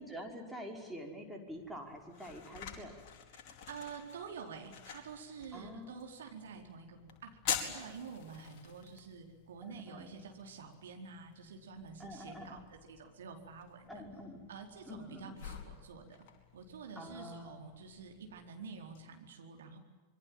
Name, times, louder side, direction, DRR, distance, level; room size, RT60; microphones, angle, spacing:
voice 1, 0.0-3.0 5.5-6.0 9.6-10.2 12.0-12.7 13.9-14.5 14.9-15.4 17.0-17.6, equal, ahead, 0 dB, 5.7 m, -46 dB
sound 1, 1.5-19.0, left 8 dB, 45° left, 4.7 m, -47 dB
voice 2, 3.3-14.0 14.5-16.2 16.5-19.8, right 5 dB, 65° right, 3 dB, 4.4 m, -49 dB
27.0 x 23.0 x 9.3 m, 1.4 s
figure-of-eight pair, 90°, 0 cm